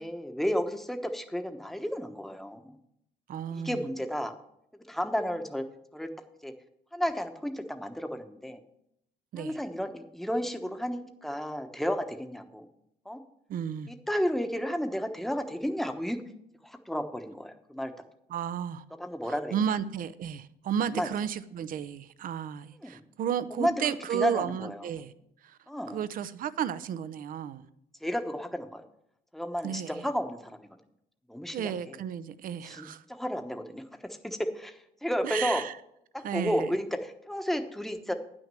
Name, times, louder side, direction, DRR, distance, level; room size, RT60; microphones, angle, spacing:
voice 1, 0.0-2.8 3.5-4.3 4.9-5.6 5.9-6.1 6.4-6.5 6.9-8.6 9.4-12.6 13.0-13.2 13.9-16.2 16.6-17.9 19.0-19.5 20.9-21.1 22.8-23.0 23.5-24.9 25.7-26.0 28.0-28.8 29.3-30.6 31.3-31.7 32.6-33.8 34.2-35.6 36.1-38.1, equal, ahead, 1.0 m, -32 dB
voice 2, 3.3-3.8 9.3-9.6 13.5-13.9 18.3-18.8 19.2-25.1 25.4-25.6 25.9-27.7 29.6-30.1 31.5-33.0 35.2-35.8 36.2-36.8, right 8 dB, 55° right, 0.7 m, -33 dB
9.9 x 6.3 x 7.5 m
cardioid pair, 110°, 17 cm